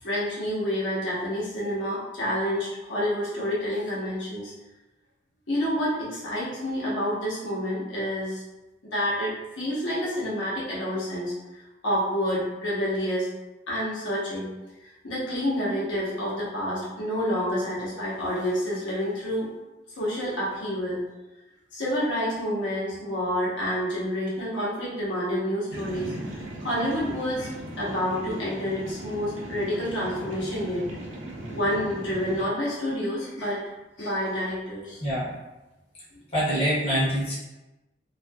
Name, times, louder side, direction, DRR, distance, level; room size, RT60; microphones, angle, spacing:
voice 1, 0.0-4.5 5.5-8.4 8.8-11.3 11.8-13.3 13.7-14.5 15.0-19.5 20.0-21.0 21.7-26.1 26.6-30.8 31.5-33.6 34.0-35.0, equal, 75° left, -7 dB, 0.9 m, -28 dB
sound 1, 25.7-32.4, right 1 dB, 85° right, 0.6 m, -38 dB
voice 2, 35.0-35.3 36.3-37.3, equal, 30° left, -9 dB, 0.7 m, -25 dB
2.6 x 2.5 x 2.2 m, 1.0 s
head